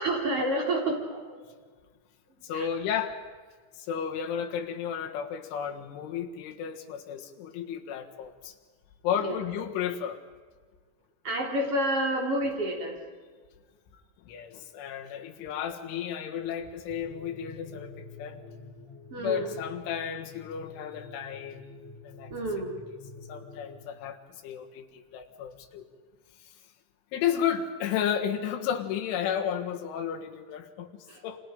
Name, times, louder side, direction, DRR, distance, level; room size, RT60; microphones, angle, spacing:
voice 1, 0.0-1.5 2.5-2.7 9.1-9.4 11.2-13.0 19.1-19.6 22.3-22.8 31.1-31.2, right 1 dB, 30° right, 0 dB, 3.9 m, -29 dB
voice 2, 2.4-3.2 3.8-8.6 9.0-10.2 14.3-18.4 19.2-21.7 22.0-22.3 23.2-25.9 27.1-31.4, left 8 dB, 85° left, 3 dB, 4.0 m, -33 dB
sound 1, 16.9-23.7, left 3 dB, 35° left, 6.7 m, -48 dB
29.5 x 26.0 x 5.2 m, 1.5 s
omnidirectional pair, 5.5 m